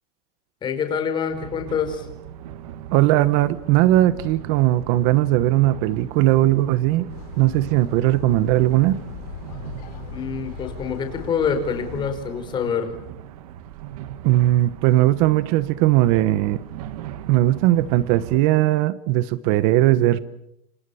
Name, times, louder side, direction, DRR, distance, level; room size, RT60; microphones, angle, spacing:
voice 1, 0.6-2.1 10.1-12.9, left 6 dB, 25° left, 7 dB, 5.0 m, -26 dB
sound 1, 1.3-18.4, right 10 dB, 70° right, 2.1 m, -39 dB
voice 2, 2.9-7.1 7.4-9.0 14.2-16.6 17.3-20.2, right 15 dB, 50° right, 15 dB, 1.2 m, -18 dB
sound 2, 7.1-12.1, left 10 dB, 80° left, 4.5 m, -39 dB
29.5 x 27.0 x 7.1 m, 0.79 s
supercardioid pair, 155°, 20 cm